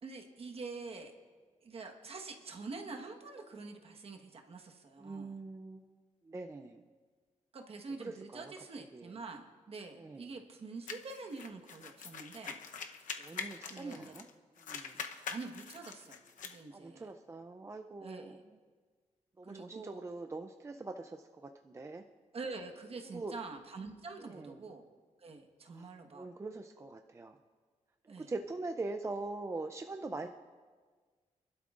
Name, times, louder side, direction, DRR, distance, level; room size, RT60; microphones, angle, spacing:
voice 1, 0.0-1.1 1.6-5.4 7.5-12.6 13.7-14.1 15.0-17.1 18.0-18.4 19.4-20.0 22.3-24.9 25.2-26.3 28.1-28.3, right 3 dB, 50° right, 3 dB, 1.3 m, -46 dB
voice 2, 5.0-6.0 6.2-6.8 8.0-9.1 10.0-10.3 13.2-14.3 14.7-15.0 16.7-18.4 19.4-22.0 23.0-23.3 24.2-24.7 25.7-25.9 26.1-27.4 28.0-30.3, right 3 dB, 20° right, 6 dB, 0.4 m, -43 dB
sound 1, 10.9-14.3 14.6-16.6, left 6 dB, 85° left, 0.8 m, -44 dB
27.0 x 12.0 x 2.5 m, 1.5 s
wide cardioid pair, 150°, 13 cm